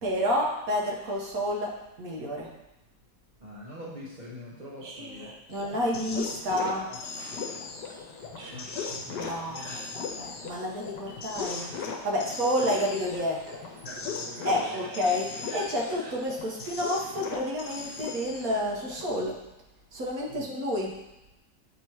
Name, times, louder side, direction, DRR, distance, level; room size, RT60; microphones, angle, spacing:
voice 1, 0.0-2.6 4.8-6.9 9.1-11.7 12.0-13.5 14.4-19.4 19.9-21.0, equal, 60° right, -3 dB, 1.3 m, -30 dB
voice 2, 3.4-5.3 6.9-7.0 8.4-8.7 9.4-9.8 12.1-12.3 13.8-14.8 20.3-20.5, equal, 30° right, -8 dB, 0.9 m, -44 dB
sound 1, 5.5-19.2, left 5 dB, 75° left, 1.4 m, -38 dB
sound 2, 7.1-18.4, right 2 dB, 80° right, 1.7 m, -48 dB
8.1 x 2.9 x 4.6 m, 0.96 s
omnidirectional pair, 1.8 m